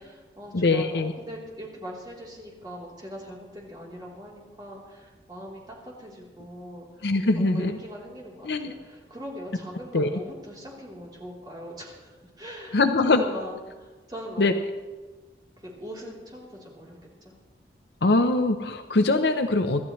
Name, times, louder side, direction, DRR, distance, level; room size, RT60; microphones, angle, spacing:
voice 1, 0.0-6.9 7.4-12.1 12.4-14.5 15.6-16.9 17.2-17.3, equal, 25° right, -4 dB, 3.4 m, -41 dB
voice 2, 0.5-1.1 7.0-7.8 8.4-8.7 9.9-10.1 12.7-13.2 14.4-14.5 18.0-19.8, left 2 dB, 70° left, 7 dB, 0.7 m, -22 dB
26.0 x 12.5 x 3.2 m, 1.3 s
head